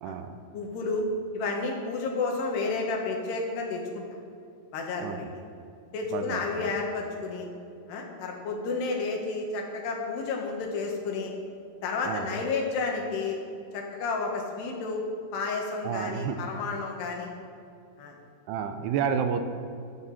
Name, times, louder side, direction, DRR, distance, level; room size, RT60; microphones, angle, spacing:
voice 1, 0.0-0.4 5.0-5.4 6.1-6.7 12.1-12.3 15.8-16.4 18.5-19.4, right 7 dB, 85° right, 8 dB, 2.7 m, -31 dB
voice 2, 0.5-1.1 1.3-4.0 4.7-5.3 5.9-7.5 7.9-11.3 11.8-13.4 13.7-15.0 15.3-17.3 18.0-18.2, left 4 dB, 80° left, 1 dB, 3.7 m, -31 dB
15.0 x 11.5 x 4.3 m, 2.4 s
omnidirectional pair, 4.8 m